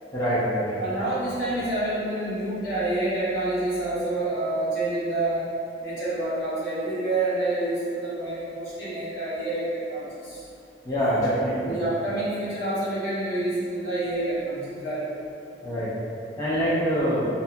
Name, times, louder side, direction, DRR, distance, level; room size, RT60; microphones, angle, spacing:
voice 1, 0.1-0.8 10.9-11.8 15.6-15.9 16.4-17.3, equal, 20° left, -10 dB, 0.4 m, -25 dB
voice 2, 0.8-5.5 5.8-10.4 11.6-15.0, right 2 dB, 70° left, -12 dB, 1.3 m, -28 dB
2.8 x 2.1 x 2.6 m, 2.6 s
head